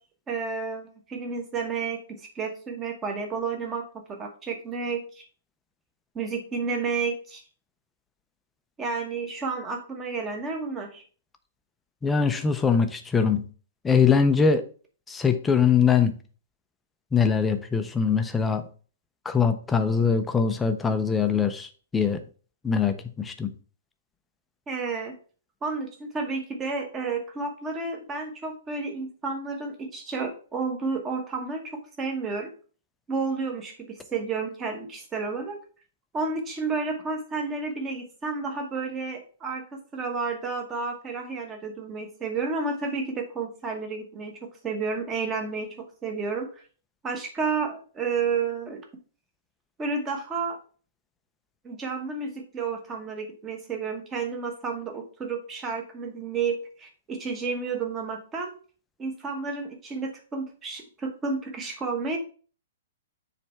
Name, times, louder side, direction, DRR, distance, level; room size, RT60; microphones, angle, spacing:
voice 1, 0.3-5.2 6.1-7.4 8.8-11.0 24.7-25.1 25.6-32.5 33.1-35.6 36.1-44.3 44.6-45.7 46.0-46.5 47.0-48.8 49.8-50.6 51.6-58.5 59.0-62.2, right 4 dB, 10° right, 1.0 m, -31 dB
voice 2, 12.0-13.4 13.8-14.6 15.1-16.1 17.1-18.6 19.3-21.7 21.9-22.2 22.6-23.5, left 6 dB, 5° left, 0.5 m, -22 dB
7.3 x 3.3 x 5.5 m
hypercardioid pair, 175°, 0 cm